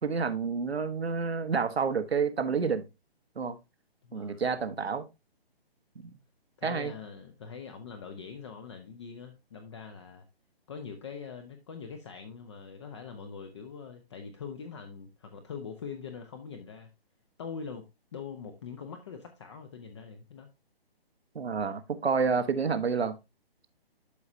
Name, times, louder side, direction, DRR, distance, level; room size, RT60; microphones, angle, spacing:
voice 1, 0.0-2.9 3.4-3.6 4.1-5.0 6.6-6.9 21.3-23.2, right 5 dB, 85° right, 1.4 m, -29 dB
voice 2, 4.0-4.6 6.6-10.3 10.7-16.9 17.4-17.9 18.1-20.5, left 6 dB, 30° left, 0.8 m, -43 dB
12.0 x 4.8 x 2.7 m
hypercardioid pair, 155°, 31 cm